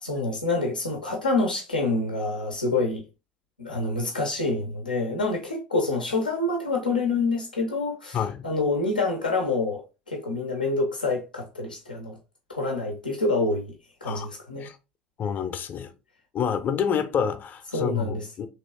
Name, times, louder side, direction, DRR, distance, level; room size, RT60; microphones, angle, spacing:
voice 1, 0.0-3.0 3.6-8.2 8.4-9.8 10.1-12.1 12.5-13.7 14.0-14.7 17.7-18.3, left 3 dB, 90° left, 0.6 m, -27 dB
voice 2, 8.1-8.4 14.0-14.3 14.6-14.8 15.2-15.9 16.3-18.5, left 7 dB, 40° left, 0.6 m, -28 dB
3.0 x 3.0 x 2.9 m
figure-of-eight pair, 65°, 5 cm